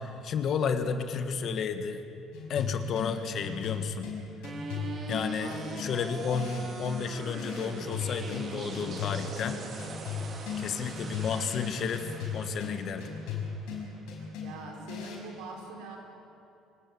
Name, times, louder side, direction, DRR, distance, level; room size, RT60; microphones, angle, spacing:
voice 1, 0.0-2.0 2.5-4.1 5.1-9.6 10.6-13.1, left 6 dB, 45° left, 8 dB, 1.5 m, -32 dB
sound 1, 2.3-15.3, left 6 dB, 85° left, 5.6 m, -38 dB
sound 2, 4.4-14.5, right 3 dB, 35° right, 2.2 m, -42 dB
voice 2, 5.4-5.9 14.4-16.0, right 4 dB, 90° right, 0 dB, 5.1 m, -43 dB
25.0 x 18.0 x 8.6 m, 2.7 s
cardioid pair, 155°, 0 cm